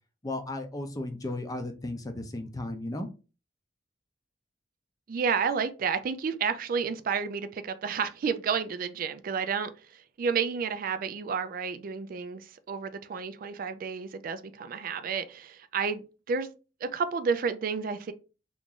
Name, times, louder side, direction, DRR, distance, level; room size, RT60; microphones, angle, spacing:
voice 1, 0.2-3.1, left 2 dB, 20° left, 0.5 m, -35 dB
voice 2, 5.1-16.5 16.8-18.1, right 6 dB, 55° right, 0.3 m, -31 dB
3.0 x 2.4 x 3.7 m
head